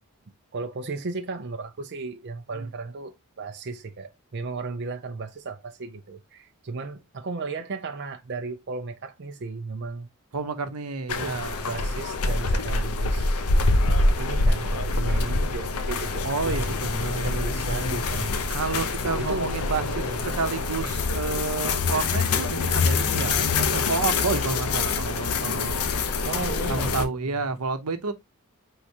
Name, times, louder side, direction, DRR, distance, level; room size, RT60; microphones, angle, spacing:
voice 1, 0.5-10.1 11.1-13.4 14.2-18.5 19.2-20.3 26.2-27.4, right 3 dB, 50° right, 0.5 m, -35 dB
voice 2, 10.3-11.6 16.2-17.3 18.5-20.1 20.3-25.8 26.7-28.1, right 4 dB, 90° right, 0.8 m, -30 dB
sound 1, 11.1-27.1, left 3 dB, 80° left, 0.7 m, -25 dB
4.7 x 3.6 x 2.8 m
head